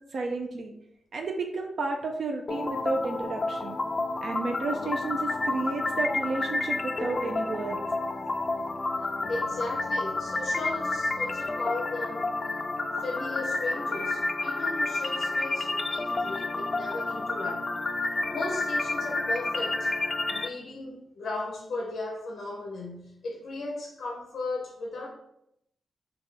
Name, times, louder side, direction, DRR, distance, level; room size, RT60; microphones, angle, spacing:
voice 1, 0.1-0.7 1.1-3.8 4.2-7.8, right 3 dB, 70° right, 3 dB, 0.4 m, -32 dB
sound 1, 2.5-20.5, left 2 dB, 40° left, 0.3 m, -30 dB
voice 2, 9.3-12.3 13.0-17.7 18.3-19.9 20.3-25.1, left 2 dB, 90° left, -1 dB, 0.6 m, -36 dB
4.0 x 2.2 x 3.3 m, 0.77 s
cardioid pair, 60°, 0 cm